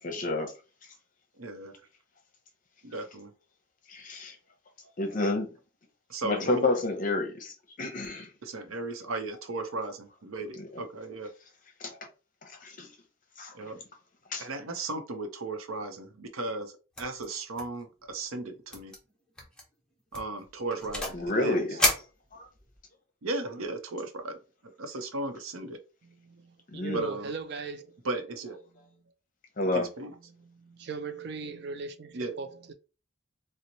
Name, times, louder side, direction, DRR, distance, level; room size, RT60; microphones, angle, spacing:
voice 1, 0.0-0.5 3.9-4.4 5.0-5.5 6.2-8.3 10.6-10.7 11.8-12.0 12.4-12.9 13.4-13.5 14.3-14.5 21.1-21.9 22.3-22.5 26.7-27.0 29.6-29.9, left 2 dB, 40° left, 0.7 m, -30 dB
voice 2, 1.4-1.8 2.8-3.3 6.1-6.7 8.4-11.3 13.5-13.8 14.4-16.7 17.0-18.9 20.1-21.8 23.2-24.3 24.8-25.8 26.9-27.3 28.0-28.6 29.7-30.1 32.1-32.3, right 2 dB, 90° right, 0.7 m, -36 dB
sound 1, 17.0-17.3 17.5-17.8 18.1-18.2 18.7-19.0 19.4-19.6 20.1-21.3 21.8-22.8, left 1 dB, 5° left, 0.6 m, -31 dB
voice 3, 26.2-27.9 30.4-32.7, right 4 dB, 50° right, 0.4 m, -38 dB
2.9 x 2.1 x 3.9 m
head